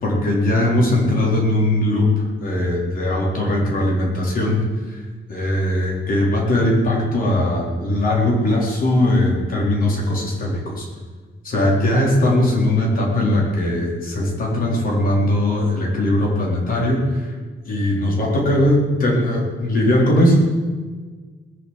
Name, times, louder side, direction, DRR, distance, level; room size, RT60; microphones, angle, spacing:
voice 1, 0.0-2.1 2.4-4.6 5.3-10.9 11.4-17.3 17.7-20.4, left 1 dB, 45° left, -2 dB, 4.1 m, -19 dB
20.0 x 7.3 x 7.7 m, 1.4 s
wide cardioid pair, 180°, 20 cm